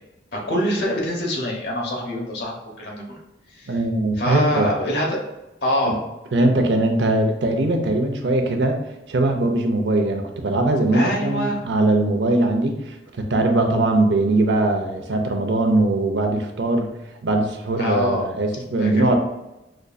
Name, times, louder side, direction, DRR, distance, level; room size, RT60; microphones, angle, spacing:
voice 1, 0.3-3.0 3.5-3.7 4.2-5.2 5.6-6.0 10.9-11.6 17.8-18.3 18.8-19.2, equal, 65° left, -1 dB, 1.0 m, -24 dB
voice 2, 3.7-4.7 5.9-6.0 6.3-8.8 9.1-19.2, right 2 dB, 90° right, 5 dB, 0.6 m, -21 dB
5.2 x 2.6 x 2.3 m, 0.96 s
head